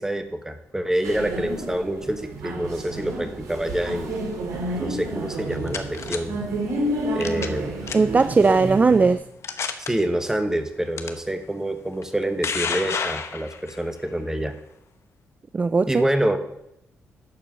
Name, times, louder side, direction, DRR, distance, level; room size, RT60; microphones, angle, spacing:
voice 1, 0.0-4.1 4.8-6.4 7.1-7.7 8.5-8.6 9.9-14.5 15.9-16.4, right 1 dB, 10° right, 7 dB, 1.2 m, -26 dB
sound 1, 1.0-9.2, right 1 dB, 80° right, 2.7 m, -30 dB
sound 2, 5.3-6.2 7.2-7.6 7.9-8.2 8.9-9.0 9.4-9.9 11.0-11.1 12.0-13.8, left 6 dB, 60° left, 0.9 m, -29 dB
voice 2, 7.9-9.2 15.5-16.0, right 4 dB, 30° right, 13 dB, 0.3 m, -18 dB
11.5 x 4.6 x 6.1 m, 0.80 s
cardioid pair, 65°, 5 cm